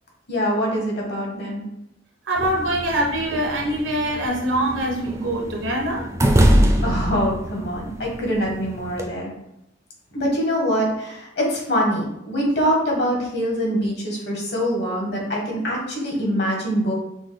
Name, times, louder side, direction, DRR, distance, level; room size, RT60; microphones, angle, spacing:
voice 1, 0.3-1.6 6.8-9.3 10.1-16.9, equal, 60° left, -1 dB, 1.4 m, -24 dB
voice 2, 2.3-6.1, right 1 dB, 90° right, -1 dB, 1.1 m, -24 dB
sound 1, 2.4-9.1, equal, 15° right, 0.4 m, -24 dB
6.1 x 2.2 x 3.4 m, 0.81 s
head